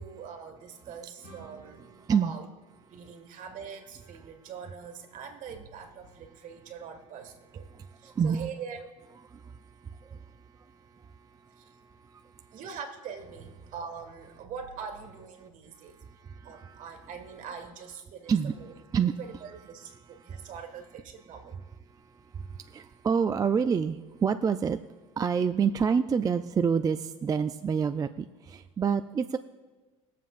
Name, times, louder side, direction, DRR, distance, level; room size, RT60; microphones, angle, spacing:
voice 1, 0.0-2.5 2.9-7.7 8.0-8.9 11.6-11.7 12.5-16.0 16.4-21.6, right 6 dB, 50° right, 5 dB, 1.9 m, -43 dB
sound 1, 1.2-4.0, right 2 dB, 70° left, 3.7 m, -56 dB
voice 2, 2.0-2.3 7.7-8.4 9.3-12.6 15.4-15.5 15.8-16.9 18.3-18.6 18.9-19.2 20.1-20.5 21.9-24.8 25.2-29.4, right 6 dB, 20° right, 9 dB, 0.4 m, -29 dB
22.0 x 7.4 x 2.5 m, 1.3 s
supercardioid pair, 95°, 17 cm